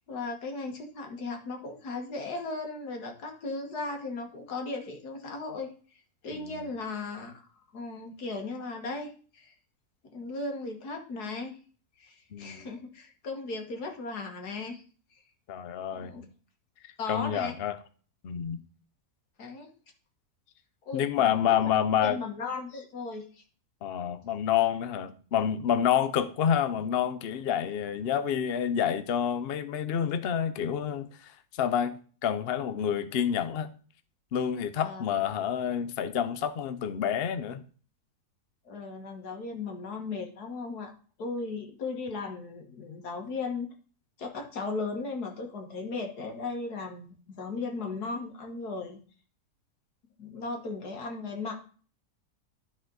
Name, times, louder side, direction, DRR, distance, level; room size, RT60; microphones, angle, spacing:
voice 1, 0.1-5.7 6.2-7.4 7.7-9.5 10.1-11.6 12.0-14.8 15.1-15.2 15.9-16.2 17.0-17.5 19.4-19.7 20.9-21.7 22.0-23.4 34.8-35.0 38.7-40.9 41.2-43.7 44.2-49.0 50.2-51.7, left 3 dB, 75° left, 1.9 m, -36 dB
voice 2, 6.3-6.7 12.3-12.7 15.5-16.3 17.1-17.8 18.2-18.6 20.9-22.2 23.8-33.7 34.3-37.6, left 9 dB, 60° left, 0.6 m, -28 dB
12.5 x 4.2 x 3.9 m
omnidirectional pair, 1.7 m